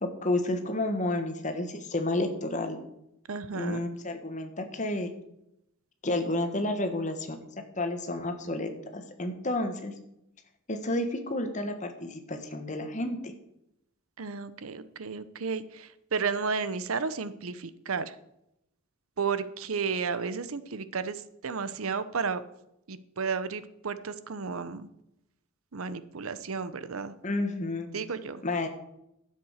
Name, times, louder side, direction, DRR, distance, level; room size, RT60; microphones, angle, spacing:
voice 1, 0.0-2.8 3.5-5.1 6.0-7.4 7.8-9.9 10.7-13.3 27.2-27.9 28.4-28.7, left 2 dB, 35° left, 7 dB, 1.4 m, -31 dB
voice 2, 3.3-3.8 14.2-18.1 19.2-22.4 22.9-24.9 25.7-27.1 27.9-28.4, right 5 dB, 85° right, 14 dB, 0.8 m, -33 dB
11.5 x 7.7 x 6.4 m, 0.83 s
head